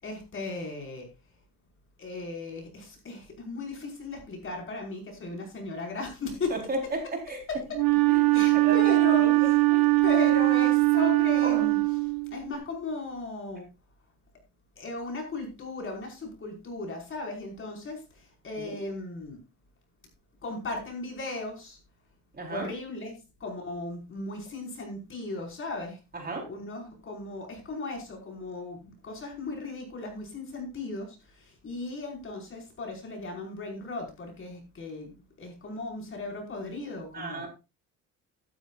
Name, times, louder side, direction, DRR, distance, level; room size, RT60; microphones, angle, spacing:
voice 1, 0.0-1.1 2.0-6.5 8.3-9.6 10.0-11.8 12.3-13.7 14.8-18.0 18.4-19.4 20.4-21.8 22.5-23.1 23.4-26.0 26.2-28.8 29.0-31.2 31.6-37.5, left 3 dB, 35° left, 1 dB, 5.3 m, -36 dB
voice 2, 6.5-7.4 8.1-9.8 11.4-11.7 18.6-18.8 22.3-22.7 26.1-26.5 37.1-37.5, right 2 dB, 25° right, 2 dB, 4.0 m, -34 dB
Wind instrument woodwind instrument, 7.7-12.5, right 23 dB, 80° right, 1.7 m, -22 dB
14.0 x 12.5 x 2.5 m, 0.28 s
cardioid pair, 130°, 34 cm